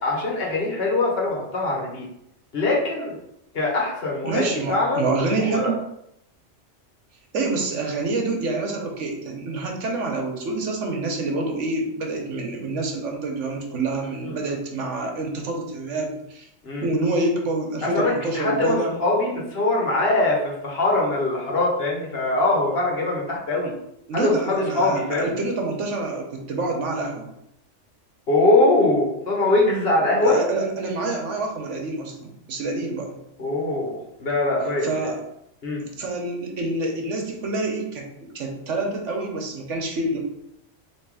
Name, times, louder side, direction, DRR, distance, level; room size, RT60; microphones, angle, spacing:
voice 1, 0.0-2.1 2.5-3.2 3.5-5.7 14.2-14.5 16.6-16.9 17.8-23.7 24.1-25.3 28.3-30.4 33.4-35.1 35.6-35.8, left 2 dB, 55° left, -2 dB, 1.3 m, -22 dB
voice 2, 4.2-5.8 7.3-16.5 16.8-18.9 24.1-27.3 30.2-33.2 34.8-35.2 35.8-40.2, right 2 dB, 80° right, 1 dB, 1.3 m, -27 dB
3.6 x 3.0 x 4.7 m, 0.79 s
omnidirectional pair, 1.2 m